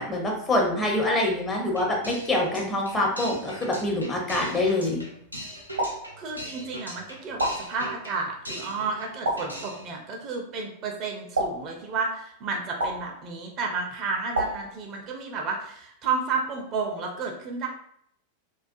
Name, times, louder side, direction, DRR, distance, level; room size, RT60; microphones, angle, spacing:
voice 1, 0.0-5.0, left 1 dB, 20° left, -1 dB, 0.6 m, -25 dB
sound 1, 1.7-9.1 9.4-9.9, right 1 dB, 90° left, 0.5 m, -40 dB
sound 2, 5.8-6.7 7.4-8.3 9.2-10.1 11.3-12.3 12.8-13.6 14.3-15.3, right 1 dB, 75° right, 0.7 m, -32 dB
voice 2, 6.2-7.4 7.7-17.7, right 4 dB, 35° right, 2 dB, 0.4 m, -31 dB
2.3 x 2.3 x 2.5 m, 0.69 s
figure-of-eight pair, 90°, 0 cm